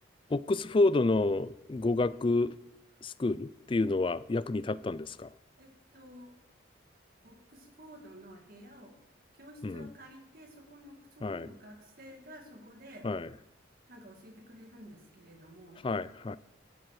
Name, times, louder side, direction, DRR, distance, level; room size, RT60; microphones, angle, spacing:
voice 1, 0.3-2.5 3.0-5.3 9.6-9.9 11.2-11.5 13.0-13.3 15.8-16.4, left 2 dB, 25° left, 0.3 m, -29 dB
voice 2, 5.6-6.3 7.2-9.0 9.3-13.1 13.9-15.8, equal, 50° right, 2.2 m, -52 dB
13.5 x 11.5 x 4.8 m
head